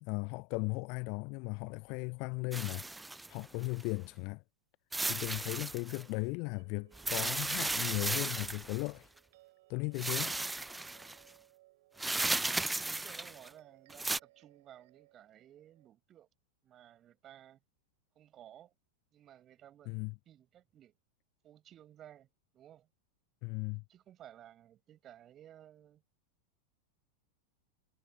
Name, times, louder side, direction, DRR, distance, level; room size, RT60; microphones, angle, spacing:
voice 1, 0.0-2.9 3.3-4.4 5.1-9.1 9.7-10.4 19.9-20.1 23.4-23.8, left 31 dB, 45° left, 0.6 m, -37 dB
sound 1, 2.5-3.8 4.9-6.0 6.9-8.9 10.0-11.2 12.0-13.5 13.9-14.2, right 2 dB, 5° right, 0.4 m, -35 dB
sound 2, 5.6-15.9, right 19 dB, 50° right, 6.5 m, -64 dB
voice 2, 12.1-16.3 16.6-17.6 18.2-18.7 19.1-20.9 21.4-22.9 23.9-26.0, right 11 dB, 30° right, 6.9 m, -57 dB
figure-of-eight pair, 90°, 0 cm